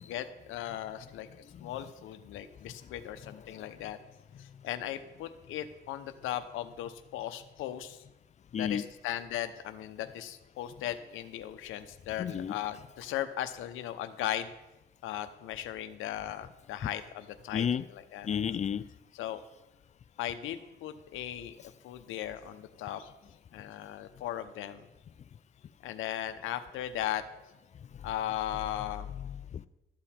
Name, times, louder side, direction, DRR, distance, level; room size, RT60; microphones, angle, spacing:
voice 1, 0.0-4.0 4.4-8.0 8.6-14.5 15.0-17.6 17.9-18.3 19.1-19.4 20.2-21.6 21.8-23.1 23.5-24.9 25.8-27.2 28.0-29.1, left 12 dB, 90° left, 0.8 m, -37 dB
voice 2, 3.2-3.6 8.5-8.9 12.2-12.6 16.8-16.9 17.5-17.9 18.2-18.8 28.8-29.6, left 8 dB, 35° left, 0.3 m, -33 dB
12.5 x 7.1 x 4.4 m
cardioid pair, 90°, 20 cm